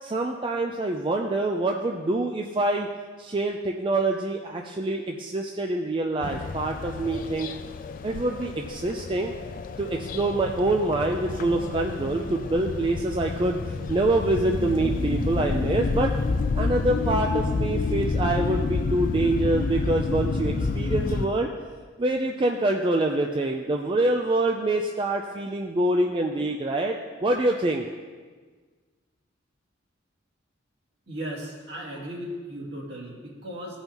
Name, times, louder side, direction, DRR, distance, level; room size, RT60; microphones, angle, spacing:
voice 1, 0.0-2.9 3.2-7.5 8.0-9.3 9.8-16.1 16.5-21.5 22.0-27.9, right 2 dB, 25° right, 2 dB, 0.4 m, -25 dB
sound 1, 6.2-21.3, left 3 dB, 45° left, 0.4 m, -29 dB
voice 2, 31.1-33.8, equal, 60° right, -6 dB, 2.6 m, -36 dB
16.0 x 5.5 x 3.0 m, 1.5 s
head